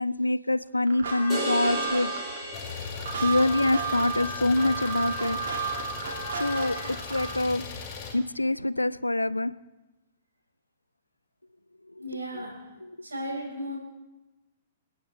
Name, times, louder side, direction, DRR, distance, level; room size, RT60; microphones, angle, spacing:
voice 1, 0.0-2.1 3.2-5.4 6.4-7.8 8.1-9.6 12.0-12.1 12.3-12.4 12.8-13.0, left 2 dB, 85° left, 17 dB, 0.4 m, -25 dB
sound 1, 0.9-7.5, right 4 dB, 60° right, 2.5 m, -33 dB
sound 2, 1.3-3.6, right 1 dB, 20° right, 4.0 m, -35 dB
Idling, 2.5-8.1, left 5 dB, 30° left, 2.7 m, -39 dB
voice 2, 12.0-12.7 13.0-13.8, equal, 75° right, -2 dB, 4.6 m, -35 dB
28.0 x 9.4 x 3.3 m, 1.1 s
figure-of-eight pair, 110°, 0 cm